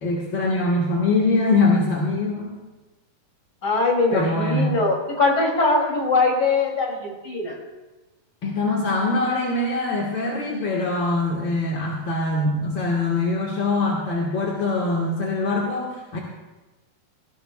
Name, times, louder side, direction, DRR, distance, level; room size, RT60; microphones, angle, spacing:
voice 1, 0.0-2.5 4.1-4.8 8.4-16.2, left 2 dB, 45° left, -2 dB, 1.7 m, -23 dB
voice 2, 3.6-7.6, left 3 dB, 30° left, -1 dB, 3.2 m, -21 dB
19.5 x 17.0 x 2.4 m, 1.1 s
omnidirectional pair, 4.0 m